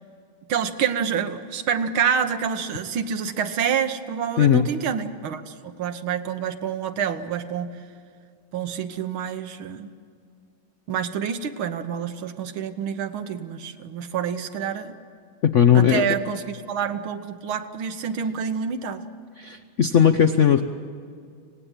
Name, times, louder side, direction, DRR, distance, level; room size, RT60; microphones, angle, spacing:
voice 1, 0.5-7.8 8.5-9.9 10.9-15.0 15.7-19.0, right 7 dB, 85° right, 9 dB, 1.9 m, -27 dB
voice 2, 15.4-16.0 19.4-20.6, left 9 dB, 70° left, 8 dB, 0.7 m, -17 dB
25.5 x 18.5 x 9.0 m, 2.2 s
omnidirectional pair, 2.2 m